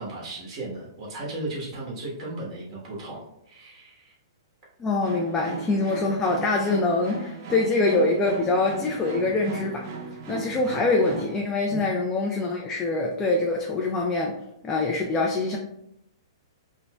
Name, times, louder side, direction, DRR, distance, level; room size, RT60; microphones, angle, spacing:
voice 1, 0.0-4.1 11.7-11.8, right 2 dB, 30° right, -5 dB, 1.1 m, -36 dB
voice 2, 4.8-9.9 10.3-15.6, left 3 dB, 20° left, -1 dB, 0.4 m, -24 dB
sound 1, 5.0-11.4, right 5 dB, 50° right, 0.5 m, -37 dB
4.1 x 2.2 x 2.2 m, 0.79 s
hypercardioid pair, 125°, 2 cm